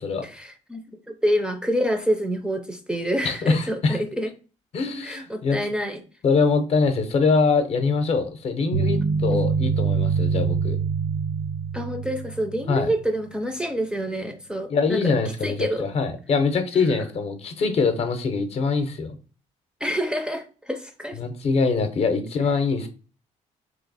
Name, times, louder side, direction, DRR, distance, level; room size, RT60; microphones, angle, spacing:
voice 1, 0.2-4.3 5.0-6.0 9.3-9.5 11.7-15.1 15.4-15.9 19.8-21.2, equal, 5° right, 6 dB, 0.4 m, -27 dB
voice 2, 3.2-4.0 4.7-5.6 6.2-10.8 12.7-12.9 14.7-19.2 21.2-22.9, left 4 dB, 50° left, 8 dB, 0.6 m, -23 dB
sound 1, 8.7-12.9, right 5 dB, 80° right, 0.6 m, -25 dB
3.0 x 2.7 x 4.0 m, 0.36 s
cardioid pair, 130°, 13 cm